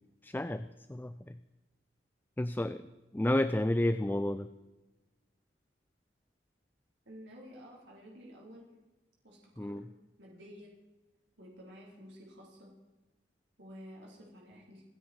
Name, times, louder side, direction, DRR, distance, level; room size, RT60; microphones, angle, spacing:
voice 1, 0.2-1.4 2.4-2.9 3.1-4.5 9.6-9.8, left 1 dB, 10° left, 12 dB, 0.4 m, -31 dB
voice 2, 7.0-8.7 9.2-9.8 10.2-10.7 11.4-12.8 13.6-14.8, equal, 80° right, -2 dB, 4.9 m, -51 dB
28.0 x 10.0 x 4.8 m, 1.1 s
head